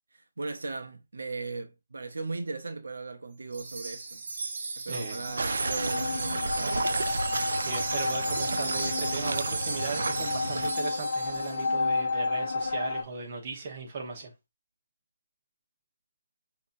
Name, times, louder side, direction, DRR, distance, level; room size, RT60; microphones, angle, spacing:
voice 1, 0.1-4.2 4.8-7.2, right 3 dB, 90° right, 0.8 m, -38 dB
Wind chime, 3.5-11.7, right 4 dB, 55° right, 0.7 m, -36 dB
voice 2, 4.9-5.2 7.6-14.3, right 4 dB, 30° right, 1.1 m, -37 dB
sound 1, 5.0-13.0, left 3 dB, 60° left, 0.7 m, -32 dB
sound 2, 5.4-10.7, right 3 dB, 75° right, 0.3 m, -33 dB
5.2 x 2.9 x 2.6 m
hypercardioid pair, 170°, 0 cm